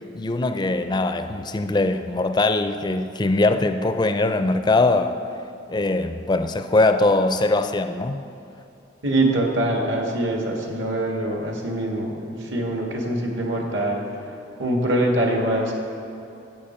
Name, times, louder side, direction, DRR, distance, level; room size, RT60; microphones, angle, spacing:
voice 1, 0.1-5.2 5.7-8.2, left 2 dB, 20° left, 8 dB, 0.4 m, -21 dB
voice 2, 9.0-14.0 14.6-15.7, right 1 dB, 65° right, 0 dB, 1.6 m, -23 dB
12.5 x 8.3 x 4.3 m, 2.8 s
head